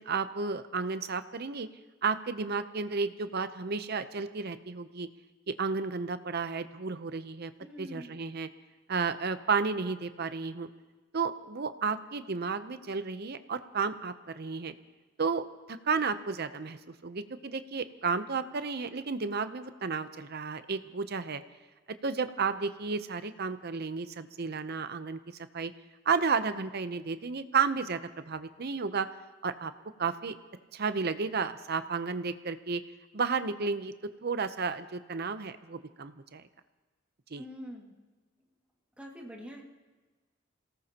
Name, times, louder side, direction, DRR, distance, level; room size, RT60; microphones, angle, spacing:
voice 1, 0.0-1.7 2.0-5.1 5.5-7.5 7.8-8.5 8.9-10.7 11.1-14.7 15.2-15.4 15.8-16.8 17.0-21.4 22.0-25.2 25.5-25.7 26.1-29.1 29.4-29.7 30.0-30.3 30.7-32.8 33.1-33.9 34.2-36.5 37.3-37.4, right 5 dB, 55° right, 11 dB, 0.7 m, -32 dB
voice 2, 7.6-8.1 37.4-37.9 39.0-39.6, equal, 5° right, -2 dB, 2.1 m, -44 dB
27.0 x 18.5 x 2.9 m, 1.3 s
head